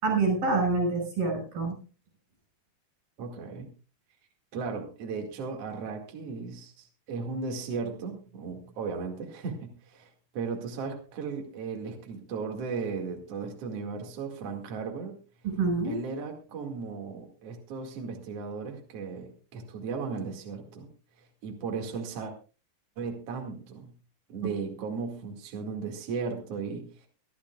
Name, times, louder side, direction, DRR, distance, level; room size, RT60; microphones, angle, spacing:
voice 1, 0.0-1.8 15.4-16.0, right 3 dB, 80° right, 4 dB, 7.3 m, -26 dB
voice 2, 3.2-3.7 4.5-15.2 15.8-20.9 21.2-22.3 23.0-23.9 24.3-27.1, right 5 dB, 45° right, 2 dB, 2.9 m, -36 dB
24.5 x 12.0 x 2.4 m, 0.34 s
omnidirectional pair, 4.1 m